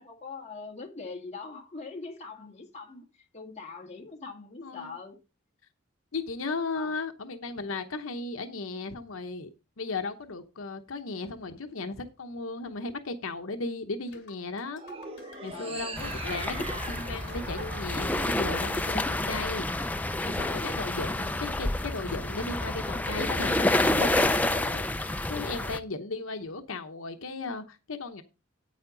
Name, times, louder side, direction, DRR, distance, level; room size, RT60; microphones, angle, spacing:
voice 1, 0.0-5.2 6.7-6.9 15.5-15.8 20.0-20.8, left 4 dB, 30° left, 1.9 m, -43 dB
voice 2, 4.6-4.9 6.1-9.5 9.8-14.8 15.4-19.7 20.2-24.8 25.3-28.2, left 3 dB, 80° left, 0.9 m, -36 dB
sound 1, 14.1-22.7, left 3 dB, 55° left, 2.9 m, -54 dB
sound 2, 14.7-19.1, right 3 dB, 25° right, 0.8 m, -41 dB
sound 3, 16.0-25.8, left 1 dB, 5° left, 0.4 m, -29 dB
9.4 x 8.5 x 3.8 m
head